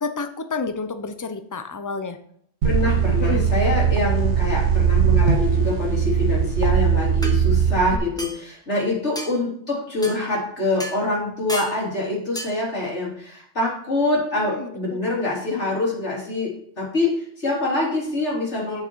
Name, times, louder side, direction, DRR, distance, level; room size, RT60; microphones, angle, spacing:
voice 1, 0.0-2.2 3.2-3.5 8.7-8.8 14.3-15.1, left 4 dB, 20° left, 8 dB, 0.6 m, -30 dB
voice 2, 2.6-16.5 16.8-18.8, left 2 dB, 90° left, -5 dB, 3.8 m, -25 dB
sound 1, 2.6-8.0, right 7 dB, 80° right, 1.2 m, -20 dB
sound 2, 6.6-6.7 7.2-7.4 8.2-8.4 9.1-9.3 10.0-10.2 10.8-11.0 11.5-11.8 12.3-12.5, right 1 dB, 5° left, 1.2 m, -32 dB
8.5 x 7.1 x 4.6 m, 0.66 s
omnidirectional pair, 1.2 m